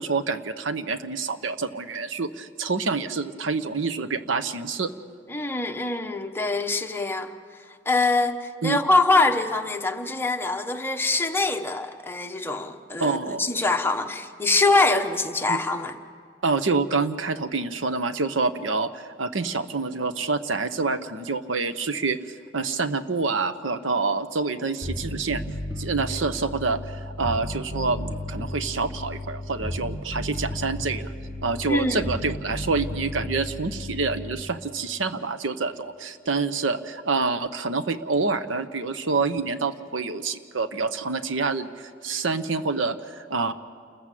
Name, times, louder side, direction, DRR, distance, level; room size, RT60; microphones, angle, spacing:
voice 1, 0.0-4.9 8.6-8.8 13.0-13.5 15.5-15.6 16.4-22.2 22.5-25.4 25.8-31.1 31.4-43.5, right 4 dB, 85° right, 11 dB, 1.0 m, -27 dB
voice 2, 5.3-7.3 7.8-15.9 31.7-32.1, left 3 dB, 10° left, 5 dB, 1.1 m, -24 dB
Bass guitar, 24.8-34.4, left 1 dB, 15° right, 2.8 m, -34 dB
29.0 x 14.5 x 7.6 m, 2.2 s
head